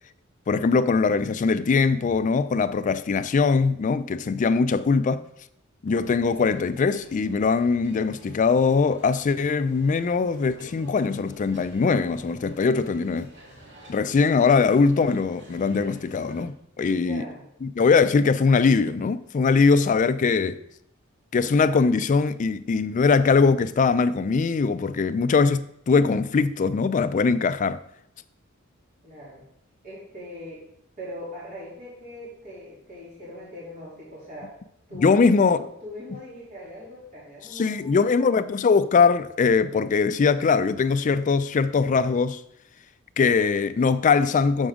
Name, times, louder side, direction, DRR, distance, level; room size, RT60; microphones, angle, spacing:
voice 1, 0.5-5.2 5.8-13.3 13.9-17.2 17.6-20.6 21.3-27.8 34.9-35.6 37.6-42.4 43.2-44.7, left 4 dB, 40° left, 0.3 m, -21 dB
sound 1, 5.9-16.5, right 1 dB, 60° right, 1.8 m, -50 dB
voice 2, 16.9-17.5 29.0-29.4 29.8-30.6 31.0-34.5 34.9-38.3, equal, 45° right, 2.8 m, -41 dB
6.9 x 6.5 x 3.7 m
head